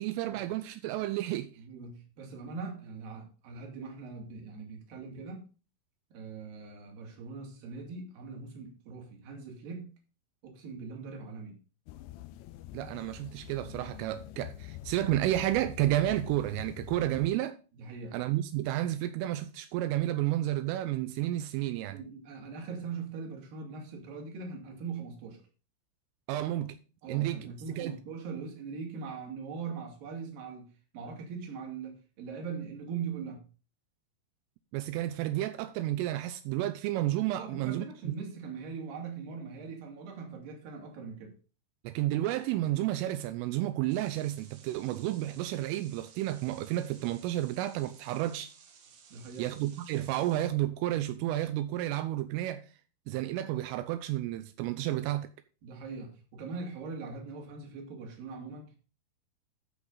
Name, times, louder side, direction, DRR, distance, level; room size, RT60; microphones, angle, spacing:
voice 1, 0.0-1.5 12.7-17.6 18.1-22.0 26.3-26.8 27.1-28.0 34.7-38.1 41.8-48.5 49.4-52.7 53.1-55.3, right 14 dB, 85° right, 3.2 m, -31 dB
voice 2, 1.6-5.4 6.1-9.9 10.4-11.6 17.7-18.2 21.9-25.4 27.0-33.4 37.4-41.3 44.8-44.9 49.1-49.6 55.6-58.7, right 5 dB, 50° right, 3.6 m, -41 dB
sound 1, 11.9-17.3, left 14 dB, 85° left, 2.5 m, -45 dB
sound 2, 43.9-50.5, right 6 dB, 70° right, 3.9 m, -57 dB
13.5 x 6.0 x 3.9 m
omnidirectional pair, 5.7 m